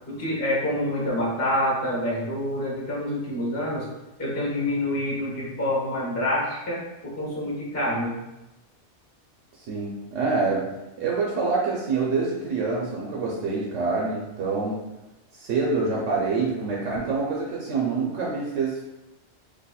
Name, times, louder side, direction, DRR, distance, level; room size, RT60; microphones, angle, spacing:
voice 1, 0.1-3.9 4.2-8.2, left 1 dB, 15° left, -5 dB, 0.9 m, -27 dB
voice 2, 9.7-10.7 11.0-14.8 15.3-18.8, right 4 dB, 90° right, -3 dB, 1.0 m, -26 dB
4.1 x 2.8 x 2.3 m, 0.98 s
omnidirectional pair, 1.2 m